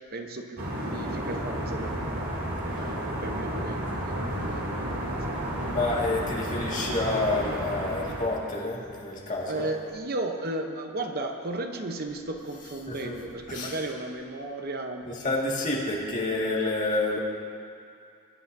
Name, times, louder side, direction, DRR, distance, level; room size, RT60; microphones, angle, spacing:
voice 1, 0.1-0.6 0.8-4.9 5.2-5.4 9.5-15.1, right 2 dB, 45° right, 4 dB, 0.9 m, -35 dB
sound 1, 0.6-8.3, equal, 70° right, 2.6 m, -32 dB
voice 2, 5.6-9.7 12.9-13.1 13.5-13.7 15.1-17.2, left 2 dB, 35° left, -4 dB, 2.0 m, -29 dB
23.0 x 9.7 x 2.7 m, 2.4 s
head